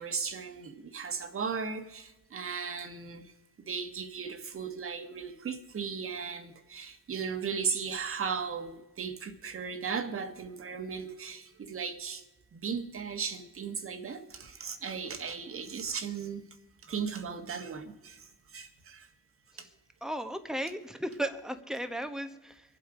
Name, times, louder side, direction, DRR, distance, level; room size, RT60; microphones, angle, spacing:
voice 1, 0.0-3.3 3.7-12.2 12.5-16.4 16.8-18.3 18.5-19.1 19.6-19.7, right 6 dB, 45° right, 1.6 m, -36 dB
voice 2, 20.0-22.6, right 1 dB, ahead, 1.2 m, -35 dB
24.0 x 8.0 x 5.0 m
cardioid pair, 90°, 30 cm